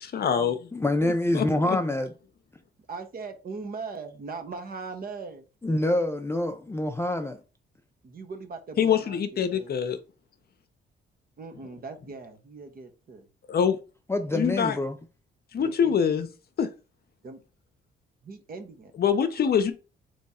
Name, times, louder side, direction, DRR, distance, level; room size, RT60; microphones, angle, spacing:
voice 1, 0.0-0.7 1.3-1.8 8.8-10.0 13.5-13.8 14.3-14.8 15.5-16.3 16.6-16.7 19.0-19.7, left 7 dB, 50° left, 0.7 m, -24 dB
voice 2, 0.7-2.1 5.6-7.4 14.1-15.0, left 1 dB, 10° left, 0.5 m, -26 dB
voice 3, 2.9-5.4 8.0-9.7 11.4-13.3 15.6-16.0 17.2-17.4 18.2-18.9, right 4 dB, 50° right, 1.0 m, -39 dB
3.6 x 3.1 x 4.2 m
cardioid pair, 90°, 20 cm